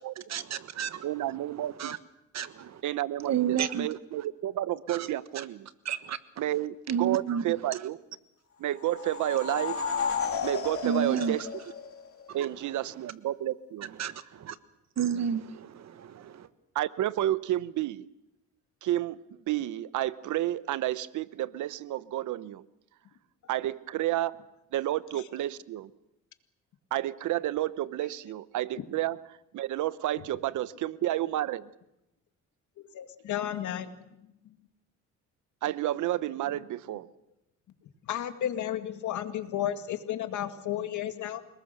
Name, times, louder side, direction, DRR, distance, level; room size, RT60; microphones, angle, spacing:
voice 1, 0.3-1.1 1.8-2.0 2.3-2.8 3.2-3.9 4.9-5.1 5.3-5.4 5.8-6.2 6.9-7.8 10.8-11.4 12.3-12.5 13.9-14.6 15.0-16.5, right 8 dB, 60° right, 13 dB, 1.5 m, -31 dB
voice 2, 1.0-2.0 2.8-5.7 6.4-8.0 8.6-9.8 10.4-11.5 12.3-13.9 16.7-18.1 18.8-22.6 23.5-24.3 24.7-25.9 26.9-29.2 29.5-31.7 35.6-37.1, right 14 dB, 75° right, 17 dB, 0.9 m, -31 dB
sound 1, 8.7-12.3, left 6 dB, 50° left, 3.5 m, -33 dB
voice 3, 32.8-33.9 34.2-34.6 38.0-41.4, left 11 dB, 75° left, 8 dB, 2.1 m, -33 dB
28.5 x 20.0 x 6.7 m, 0.90 s
cardioid pair, 90°, 30 cm